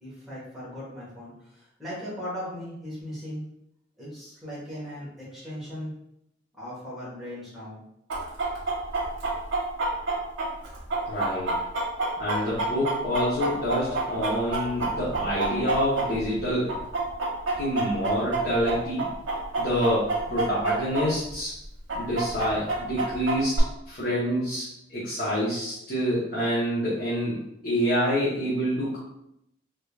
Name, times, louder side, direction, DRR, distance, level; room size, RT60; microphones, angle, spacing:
voice 1, 0.0-3.4 4.0-5.9 6.5-7.8, equal, ahead, -9 dB, 1.3 m, -38 dB
Chicken rooster, 8.1-16.4 16.7-21.0 21.3-21.4 21.9-23.6, right 3 dB, 90° right, 1.0 m, -27 dB
voice 2, 11.1-11.5 12.2-16.7 17.5-19.1 19.6-21.5 21.9-24.6 24.9-27.4 27.6-29.0, equal, 50° left, -8 dB, 0.9 m, -27 dB
3.7 x 3.3 x 2.3 m, 0.79 s
head